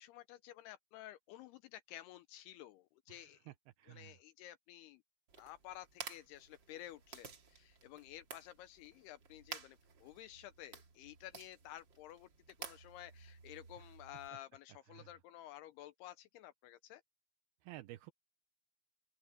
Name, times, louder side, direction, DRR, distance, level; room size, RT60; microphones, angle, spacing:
voice 1, 0.0-3.5 3.9-5.0 5.4-12.3 12.6-17.0, left 13 dB, 80° left, 2.5 m, -53 dB
voice 2, 3.1-4.2 13.8-13.9 14.9-15.1 17.6-18.1, right 16 dB, 80° right, 2.4 m, -53 dB
sound 1, 5.3-14.3, right 5 dB, 40° right, 1.7 m, -53 dB
open air
omnidirectional pair, 4.9 m